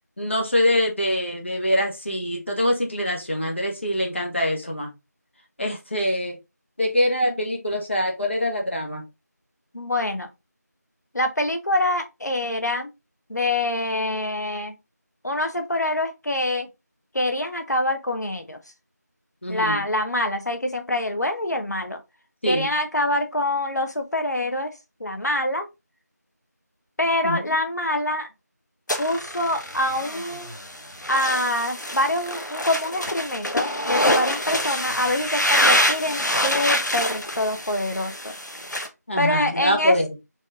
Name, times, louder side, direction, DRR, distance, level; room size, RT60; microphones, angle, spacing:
voice 1, 0.2-4.9 5.6-6.4 6.8-9.0 19.4-19.8 22.4-22.7 27.2-27.4 39.1-40.1, left 1 dB, 40° left, 1.3 m, -24 dB
voice 2, 9.7-10.3 11.1-12.9 13.3-14.7 15.2-16.7 17.1-18.6 19.5-22.0 22.5-24.7 25.0-25.6 27.0-28.3 29.0-30.5 31.1-38.3 39.2-39.9, left 1 dB, 70° left, 1.1 m, -25 dB
sound 1, 28.9-38.9, left 1 dB, 85° left, 1.2 m, -26 dB
4.5 x 3.0 x 3.5 m
figure-of-eight pair, 175°, 9 cm